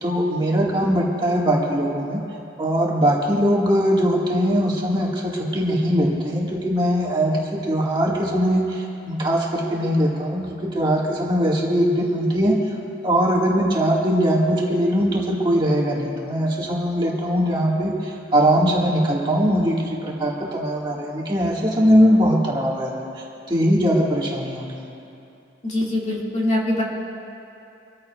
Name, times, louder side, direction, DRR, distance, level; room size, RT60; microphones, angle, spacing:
voice 1, 0.0-2.2 2.6-12.6 13.0-23.1 23.5-24.9, equal, 25° right, -4 dB, 1.8 m, -21 dB
voice 2, 25.6-26.8, left 1 dB, 40° left, -4 dB, 2.1 m, -23 dB
25.0 x 14.5 x 2.4 m, 2.7 s
head